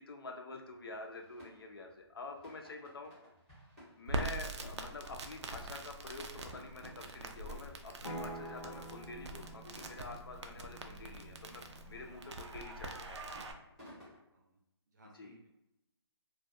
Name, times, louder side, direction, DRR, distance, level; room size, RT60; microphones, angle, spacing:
voice 1, 0.0-3.1 4.0-13.2 15.2-15.3, left 3 dB, 55° left, 3 dB, 0.4 m, -47 dB
sound 1, 0.6-14.2, equal, ahead, 0.7 m, -59 dB
Crackle, 4.1-13.5, right 2 dB, 90° right, 0.4 m, -44 dB
sound 2, 8.0-12.2, right 1 dB, 90° left, 0.8 m, -49 dB
voice 2, 12.1-12.4 13.8-14.6 14.9-15.5, right 1 dB, 40° right, -1 dB, 0.6 m, -62 dB
2.3 x 2.1 x 2.5 m, 0.88 s
hypercardioid pair, 170°, 14 cm